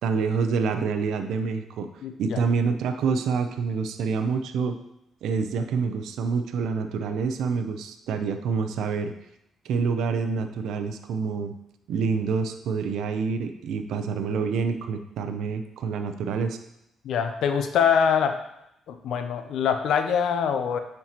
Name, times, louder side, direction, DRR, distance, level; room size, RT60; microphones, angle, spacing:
voice 1, 0.0-1.9 2.2-4.8 5.2-9.1 9.6-11.5 11.9-16.6, right 5 dB, 80° right, 7 dB, 0.5 m, -27 dB
voice 2, 2.0-2.4 17.0-18.4 18.9-20.8, left 7 dB, 75° left, 7 dB, 0.5 m, -24 dB
8.6 x 4.4 x 2.9 m, 0.81 s
cardioid pair, 90°, 0 cm